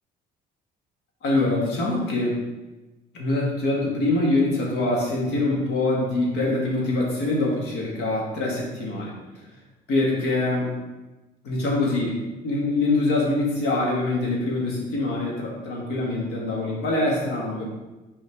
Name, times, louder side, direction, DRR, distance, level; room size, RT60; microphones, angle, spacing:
voice 1, 1.2-2.3 3.1-9.1 9.9-10.8 11.4-17.7, left 2 dB, 85° left, -2 dB, 1.9 m, -24 dB
6.6 x 4.5 x 3.6 m, 1.1 s
cardioid pair, 110°, 17 cm